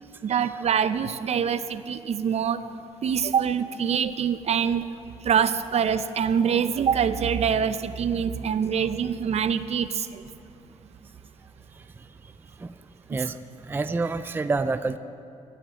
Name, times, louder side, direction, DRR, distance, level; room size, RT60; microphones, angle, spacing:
voice 1, 0.2-2.6 3.0-4.9 5.2-10.2, right 7 dB, 55° right, 12 dB, 0.6 m, -25 dB
voice 2, 13.6-15.0, right 3 dB, 15° right, 11 dB, 0.4 m, -28 dB
14.0 x 9.5 x 8.9 m, 2.6 s
cardioid pair, 120°, 13 cm